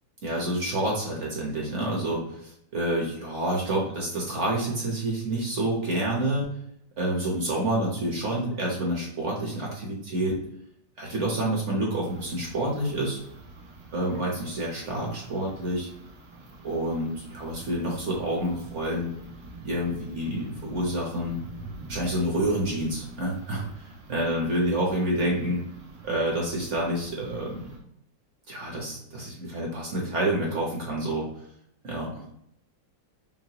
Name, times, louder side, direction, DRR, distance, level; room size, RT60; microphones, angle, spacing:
voice 1, 0.2-6.5 7.0-10.3 11.0-13.2 13.9-15.9 16.6-19.1 19.6-21.4 21.9-25.6 26.0-27.7 28.5-31.3 31.8-32.1, right 1 dB, 50° right, -3 dB, 1.1 m, -28 dB
sound 1, 12.0-27.8, right 2 dB, 75° right, 1.5 m, -45 dB
5.7 x 2.1 x 2.9 m, 0.72 s
omnidirectional pair, 2.0 m